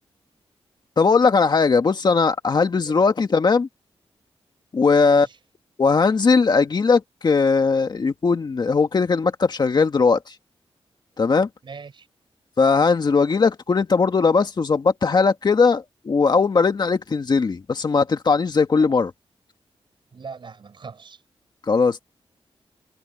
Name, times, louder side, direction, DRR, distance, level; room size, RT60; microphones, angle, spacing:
voice 1, 1.0-3.7 4.7-5.3 5.8-10.3 11.2-11.5 12.6-19.1 21.7-22.0, left 4 dB, 45° left, 1.8 m, -19 dB
voice 2, 5.0-5.4 11.6-12.1 20.1-21.2, right 5 dB, 55° right, 5.7 m, -40 dB
wide cardioid pair, 135°, 10 cm